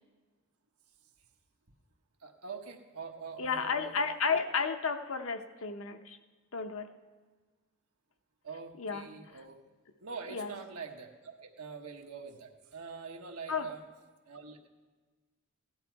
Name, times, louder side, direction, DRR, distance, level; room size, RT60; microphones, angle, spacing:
voice 1, 2.2-3.9 8.4-9.6 10.0-13.8 14.2-14.7, right 5 dB, 90° right, 2 dB, 1.2 m, -44 dB
voice 2, 3.4-6.2 6.5-6.9 8.8-9.1 10.3-10.5 13.5-13.7, left 5 dB, 65° left, 8 dB, 0.8 m, -32 dB
16.5 x 11.0 x 4.6 m, 1.4 s
head